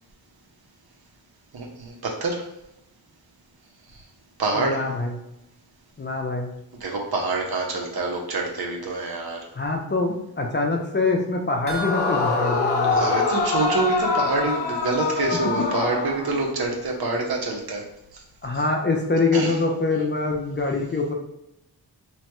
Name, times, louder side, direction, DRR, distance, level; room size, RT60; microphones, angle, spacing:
voice 1, 1.5-2.4 4.4-4.8 6.7-9.5 12.9-17.8 18.1-18.2 19.3-19.6, right 3 dB, 60° right, 0 dB, 0.7 m, -26 dB
voice 2, 4.5-5.1 6.0-6.5 9.6-13.1 18.4-21.1, left 3 dB, 30° left, 1 dB, 0.4 m, -24 dB
Yell / Screaming, 11.7-16.6, left 4 dB, 85° left, 0.6 m, -24 dB
sound 1, 11.7-14.2 14.5-14.6 15.0-15.1, right 2 dB, 25° right, 0.7 m, -37 dB
2.9 x 2.1 x 2.9 m, 0.85 s
wide cardioid pair, 65°, 42 cm